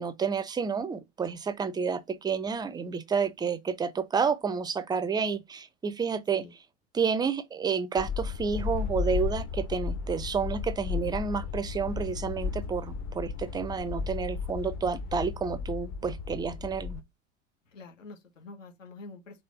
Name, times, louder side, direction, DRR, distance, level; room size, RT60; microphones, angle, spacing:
voice 1, 0.0-6.4 6.9-17.0, right 5 dB, 10° right, 0.4 m, -30 dB
sound 1, 8.0-17.0, left 5 dB, 45° left, 1.1 m, -34 dB
voice 2, 17.7-19.4, left 3 dB, 80° left, 1.3 m, -47 dB
4.1 x 3.2 x 4.0 m
figure-of-eight pair, 80°, 38 cm